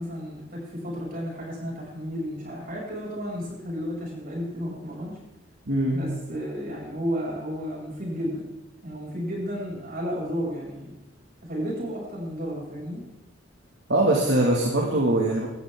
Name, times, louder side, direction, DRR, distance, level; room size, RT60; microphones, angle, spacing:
voice 1, 0.0-5.2 5.9-8.5 8.8-10.9 11.4-13.0, equal, 55° right, -4 dB, 7.1 m, -32 dB
voice 2, 5.7-6.1 13.9-15.5, right 1 dB, 70° right, -2 dB, 2.3 m, -22 dB
17.5 x 13.5 x 3.8 m, 0.91 s
head